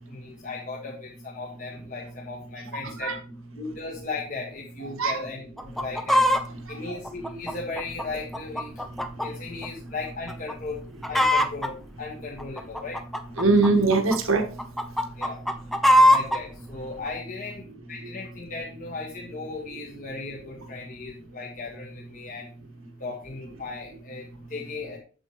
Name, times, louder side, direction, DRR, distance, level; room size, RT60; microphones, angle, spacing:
voice 1, 0.1-3.1 3.6-6.2 6.7-8.7 9.1-13.0 15.2-15.4 16.0-22.5 23.0-25.0, left 3 dB, 40° left, -2 dB, 1.7 m, -37 dB
voice 2, 2.8-3.2 5.0-5.2 6.8-7.0 8.9-9.0 13.4-14.5 15.2-15.3, right 3 dB, 85° right, 4 dB, 1.8 m, -22 dB
Chicken rooster, 5.6-6.4 7.0-9.3 9.6-9.7 10.3-10.5 10.8-11.7 12.4-14.2 14.6-16.4 17.1-17.2, left 1 dB, ahead, 0.6 m, -21 dB
8.6 x 7.5 x 3.2 m, 0.39 s
head